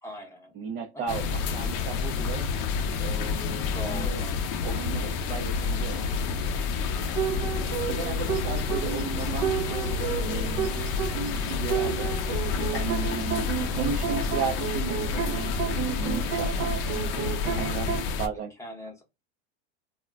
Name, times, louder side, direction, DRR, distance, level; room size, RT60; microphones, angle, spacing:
voice 1, 0.0-0.6 0.9-1.2 3.7-4.5 17.6-18.1 18.6-19.0, left 1 dB, 10° left, 1 dB, 0.8 m, -42 dB
voice 2, 0.6-2.5 3.0-4.2 4.6-7.5 7.9-10.7 11.4-12.1 12.4-13.5 13.8-16.7 17.5-18.5, right 6 dB, 35° right, 3 dB, 0.4 m, -36 dB
sound 1, 1.1-18.3, left 5 dB, 45° left, 0.5 m, -29 dB
sound 2, 7.2-18.0, right 8 dB, 55° right, 0.7 m, -32 dB
2.3 x 2.1 x 3.3 m, 0.23 s
supercardioid pair, 140°, 33 cm